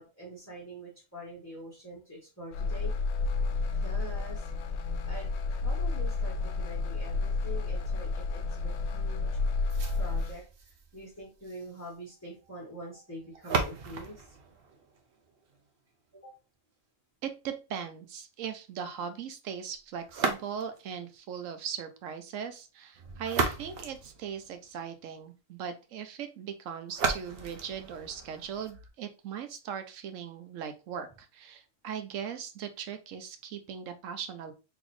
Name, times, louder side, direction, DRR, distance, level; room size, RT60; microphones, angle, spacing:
voice 1, 0.0-2.9 3.7-4.5 5.1-9.4 10.0-10.4 10.9-14.3 16.1-16.3, equal, 15° left, -5 dB, 1.1 m, -45 dB
sound 1, 2.5-10.4, left 3 dB, 65° left, 0.8 m, -31 dB
sound 2, 9.7-15.7 20.1-20.9 22.9-24.9 26.9-28.9, right 4 dB, 55° right, 0.8 m, -36 dB
voice 2, 17.2-34.5, right 8 dB, 75° right, 9 dB, 1.0 m, -39 dB
3.9 x 3.0 x 3.1 m, 0.31 s
omnidirectional pair, 1.4 m